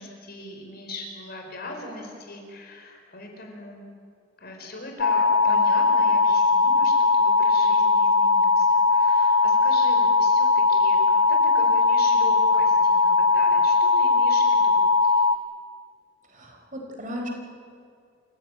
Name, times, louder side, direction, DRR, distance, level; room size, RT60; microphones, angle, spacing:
voice 1, 0.0-3.8 4.4-15.3, left 2 dB, 55° left, 2 dB, 4.9 m, -40 dB
sound 1, 5.0-15.4, left 4 dB, 80° left, 0.8 m, -19 dB
voice 2, 16.3-17.3, equal, 40° right, 1 dB, 4.6 m, -36 dB
28.5 x 16.0 x 9.2 m, 2.3 s
head